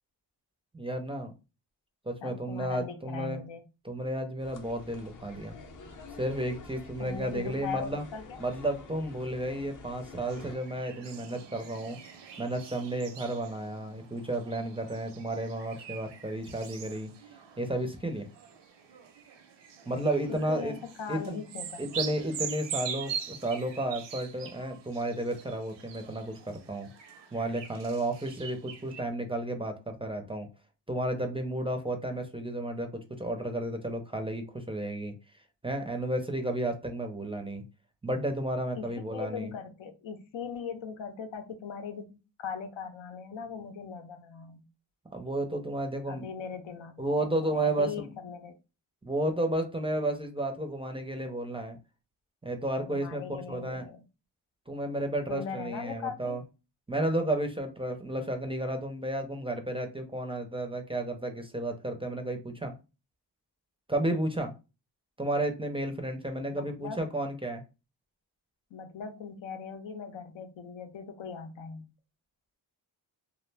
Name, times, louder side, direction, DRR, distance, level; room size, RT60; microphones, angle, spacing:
voice 1, 0.7-1.3 2.1-3.4 3.8-5.5 6.2-8.0 8.4-12.0 12.4-17.1 17.6-18.3 19.9-20.7 21.1-21.4 21.8-26.9 27.3-30.5 30.9-35.1 35.6-37.6 38.0-39.5 45.1-46.3 47.0-48.1 49.0-51.8 52.4-53.9 54.7-56.4 56.9-62.7 63.9-64.5 65.2-67.6, right 1 dB, 15° right, 0.4 m, -32 dB
voice 2, 2.2-3.6 7.0-8.4 20.3-21.9 38.8-44.6 46.1-48.6 52.8-54.1 55.3-56.4 66.5-67.1 68.7-71.9, left 6 dB, 85° left, 0.6 m, -40 dB
sound 1, 4.4-10.5, left 3 dB, 45° left, 0.6 m, -48 dB
sound 2, 10.3-29.0, right 7 dB, 70° right, 0.6 m, -43 dB
2.4 x 2.0 x 3.2 m
wide cardioid pair, 100°, 44 cm